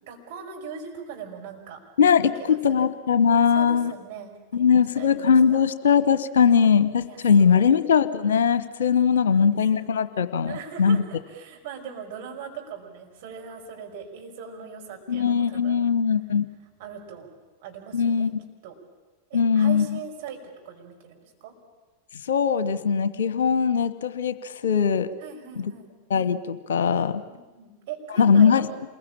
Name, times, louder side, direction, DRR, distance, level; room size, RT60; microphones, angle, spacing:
voice 1, 0.0-1.8 2.4-2.9 3.5-5.6 7.1-7.7 9.2-10.1 10.5-15.9 16.8-17.3 17.6-18.3 18.6-18.8 19.3-20.4 20.6-21.5 25.2-25.9 27.3-28.8, right 6 dB, 50° right, 1 dB, 5.3 m, -40 dB
voice 2, 2.0-2.3 2.6-3.9 4.5-11.0 15.1-16.5 17.9-18.3 19.3-19.9 22.3-25.1 25.6-25.7 26.1-27.2 28.2-28.7, left 6 dB, 60° left, 13 dB, 1.1 m, -20 dB
27.0 x 21.5 x 8.8 m, 1.2 s
figure-of-eight pair, 90°, 0 cm